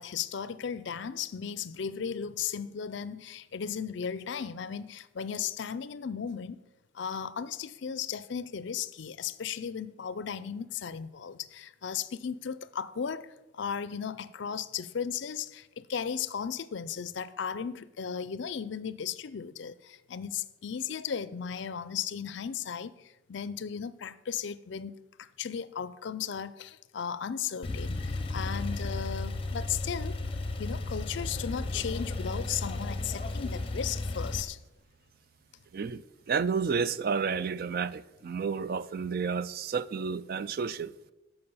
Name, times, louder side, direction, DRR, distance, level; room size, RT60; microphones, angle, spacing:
voice 1, 0.0-6.6 6.9-24.9 25.2-30.2 30.6-34.6, left 7 dB, 60° left, 0.4 m, -36 dB
Male speech man speaking / Car / Idling, 27.6-34.4, left 2 dB, 25° left, 0.7 m, -34 dB
voice 2, 35.7-40.9, right 5 dB, 45° right, 0.3 m, -31 dB
14.0 x 5.7 x 5.5 m
head